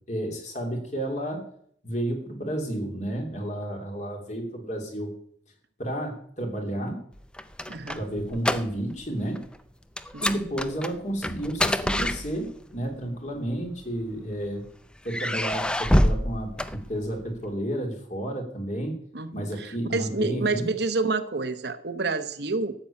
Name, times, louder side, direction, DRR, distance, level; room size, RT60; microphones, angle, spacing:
voice 1, 0.1-1.4 1.8-5.1 5.8-7.0 7.9-9.4 10.2-14.6 15.0-19.0 19.3-20.7, right 1 dB, 40° left, 3 dB, 2.9 m, -31 dB
sound 1, 7.2-9.1 9.3-9.6 10.0-12.8 13.6-14.5 15.1-17.4, left 1 dB, 5° left, 0.5 m, -27 dB
voice 2, 7.7-8.0 10.1-10.2 19.1-22.7, right 3 dB, 60° right, 10 dB, 1.0 m, -28 dB
13.0 x 7.1 x 8.4 m, 0.64 s
head